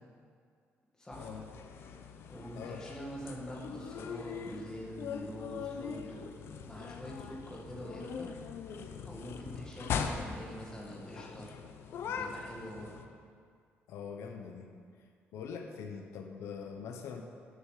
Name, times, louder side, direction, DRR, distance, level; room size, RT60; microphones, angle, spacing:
voice 1, 1.0-1.3 2.3-6.3 6.6-8.3 9.0-11.5 12.0-13.1, equal, 15° left, -3 dB, 2.0 m, -45 dB
sound 1, 1.1-13.0, left 6 dB, 60° left, 0.7 m, -41 dB
voice 2, 13.9-14.7 15.3-17.2, left 6 dB, 90° left, 4 dB, 1.0 m, -43 dB
11.0 x 7.2 x 6.6 m, 2.2 s
cardioid pair, 155°, 5 cm